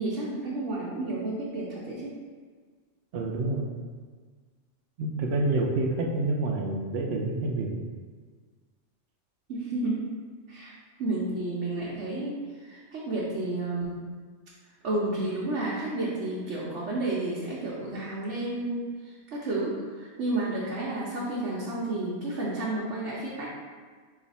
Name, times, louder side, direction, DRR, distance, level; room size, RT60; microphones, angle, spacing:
voice 1, 0.0-2.1 9.5-10.1 10.5-10.7 11.0-14.0 14.8-23.5, right 2 dB, 85° right, -6 dB, 1.1 m, -31 dB
voice 2, 3.1-3.7 5.0-7.7, right 2 dB, 65° right, 1 dB, 0.8 m, -28 dB
4.6 x 2.5 x 4.0 m, 1.5 s
omnidirectional pair, 1.2 m